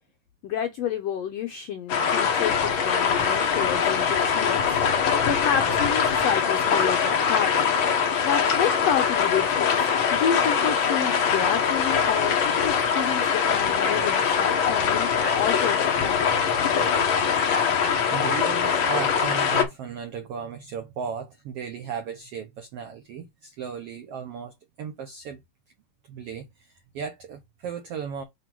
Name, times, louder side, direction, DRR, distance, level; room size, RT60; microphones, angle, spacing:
voice 1, 0.4-4.8 5.3-7.8 8.2-16.5, left 8 dB, 90° left, 1.4 m, -29 dB
sound 1, 1.9-19.6, left 6 dB, 55° left, 1.4 m, -23 dB
voice 2, 18.1-25.4 26.1-28.2, right 7 dB, 85° right, 1.3 m, -36 dB
7.7 x 3.0 x 4.5 m
omnidirectional pair, 3.9 m